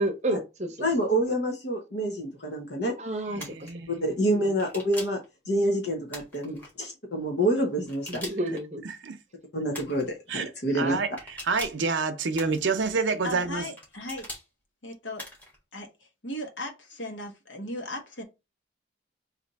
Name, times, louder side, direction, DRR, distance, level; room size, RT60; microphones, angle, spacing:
voice 1, 0.0-1.1 3.0-3.7 4.3-4.5 6.5-6.7 8.1-8.8 10.8-10.9, right 1 dB, 35° right, 0.8 m, -31 dB
voice 2, 0.8-3.0 3.4-3.5 3.9-5.2 5.5-8.2 9.5-11.0, right 1 dB, 55° left, 0.9 m, -27 dB
voice 3, 3.3-4.1 9.0-9.2 10.3-10.5 10.8-13.6, right 4 dB, 75° right, 0.7 m, -28 dB
sound 1, 3.4-3.7 4.6-5.2 6.1-6.7 7.9-8.6 9.7-10.1 11.2-11.9 12.3-12.9 13.8-14.4 15.2-15.6, left 1 dB, 10° left, 1.4 m, -41 dB
voice 4, 13.2-14.3 14.8-15.3 15.7-18.2, left 1 dB, 75° left, 1.3 m, -37 dB
3.4 x 2.7 x 4.0 m
head